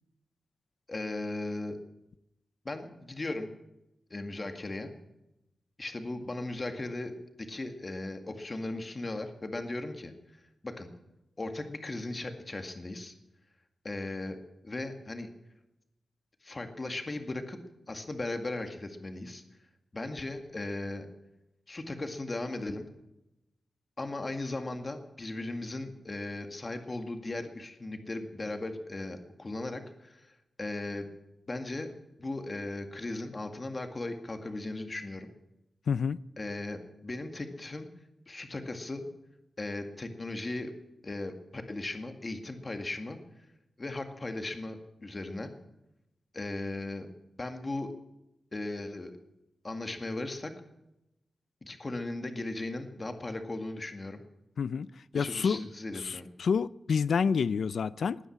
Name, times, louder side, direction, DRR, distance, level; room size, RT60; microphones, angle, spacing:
voice 1, 0.9-1.8 2.6-3.5 4.1-5.0 5.8-10.1 10.6-10.9 11.4-13.1 13.8-14.4 14.6-15.3 16.4-17.6 17.9-19.4 19.9-21.1 21.7-22.9 24.0-31.1 31.5-31.9 32.2-35.3 36.4-37.9 38.3-39.1 39.6-40.7 41.0-43.2 43.8-45.5 46.3-47.1 47.4-47.9 48.5-49.1 49.6-50.5 51.6-54.2 55.1-56.3, left 2 dB, 30° left, 2.0 m, -37 dB
voice 2, 35.9-36.2 54.6-54.9 55.1-55.6 56.0-58.2, left 6 dB, 75° left, 0.5 m, -28 dB
20.0 x 9.8 x 7.4 m
wide cardioid pair, 120°, 0 cm